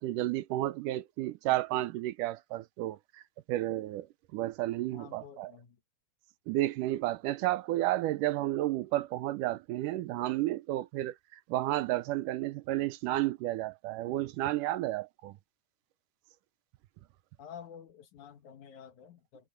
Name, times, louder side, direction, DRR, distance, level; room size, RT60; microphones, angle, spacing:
voice 1, 0.0-3.2 3.5-5.5 6.5-15.4, right 15 dB, 80° right, 2.0 m, -32 dB
voice 2, 4.9-5.8 7.7-7.9 17.4-19.5, left 8 dB, 65° left, 2.5 m, -50 dB
omnidirectional pair, 4.1 m